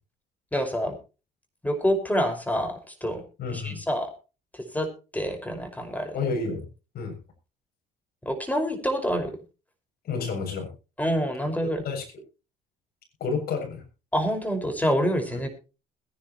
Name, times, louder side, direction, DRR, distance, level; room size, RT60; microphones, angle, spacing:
voice 1, 0.5-1.0 1.6-2.7 3.0-3.2 3.5-4.1 4.7-4.9 5.1-6.1 8.3-9.3 11.0-11.8 14.1-15.6, equal, 10° left, 6 dB, 5.2 m, -26 dB
voice 2, 3.4-3.8 6.1-6.7 6.9-7.1 10.0-10.7 11.8-12.0 13.2-13.8 15.3-15.4, left 4 dB, 60° left, 3 dB, 7.2 m, -30 dB
21.5 x 10.5 x 3.0 m, 0.31 s
supercardioid pair, 80°, 17 cm